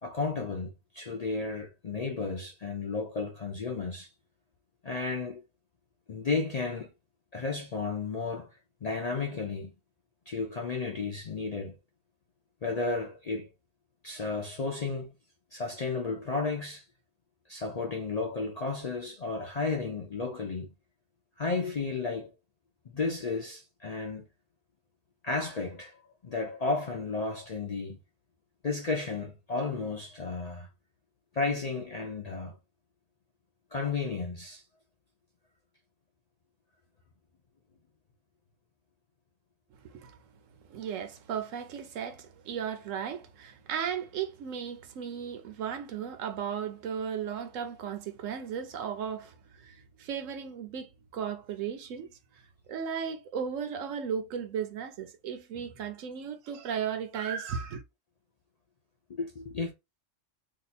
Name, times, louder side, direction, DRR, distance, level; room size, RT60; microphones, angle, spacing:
voice 1, 0.0-4.1 4.8-5.5 6.1-6.9 7.3-8.5 8.8-9.7 10.3-11.8 12.6-13.5 14.0-15.1 15.5-16.8 17.5-20.7 21.4-22.3 22.9-24.3 25.2-28.0 28.6-30.7 31.3-32.6 33.7-34.6 59.1-59.7, left 4 dB, 50° left, 0.4 m, -33 dB
voice 2, 39.8-40.2 40.6-52.1 52.3-57.8, right 7 dB, 85° right, 1.0 m, -36 dB
2.8 x 2.3 x 4.1 m
omnidirectional pair, 1.3 m